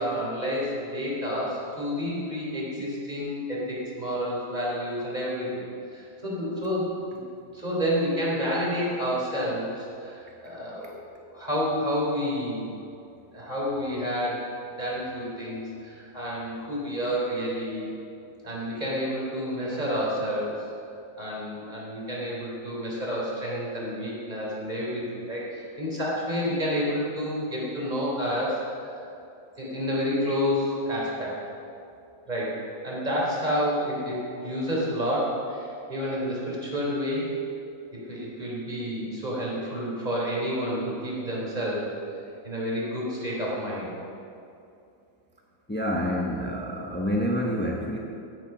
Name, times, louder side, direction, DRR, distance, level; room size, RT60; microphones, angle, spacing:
voice 1, 0.0-5.6 5.9-7.2 7.5-10.9 11.3-12.7 13.3-14.5 14.8-17.9 18.4-20.5 21.2-28.6 29.6-31.4 32.3-32.6 32.8-37.3 37.9-41.9 42.4-43.9, equal, 20° right, -5 dB, 3.6 m, -29 dB
voice 2, 45.7-48.0, equal, 10° left, -1 dB, 0.5 m, -27 dB
16.0 x 8.5 x 6.1 m, 2.6 s
omnidirectional pair, 2.1 m